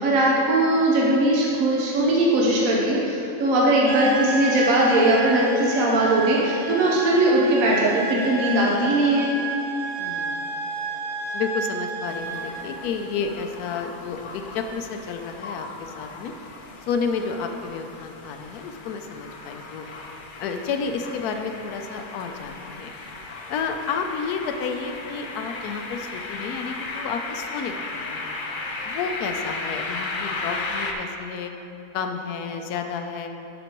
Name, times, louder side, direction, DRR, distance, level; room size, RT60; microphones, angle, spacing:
voice 1, 0.0-9.4, right 1 dB, 65° right, -4 dB, 1.4 m, -20 dB
sound 1, 3.9-12.8, right 3 dB, 45° right, 0.7 m, -31 dB
voice 2, 10.0-10.6 11.3-16.3 16.8-19.9 20.4-22.9 23.5-28.4 28.8-31.5 31.9-33.3, left 5 dB, 90° left, 5 dB, 1.1 m, -31 dB
sound 2, 12.1-30.9, left 3 dB, 60° left, 0.5 m, -36 dB
10.0 x 6.4 x 3.0 m, 2.9 s
omnidirectional pair, 1.6 m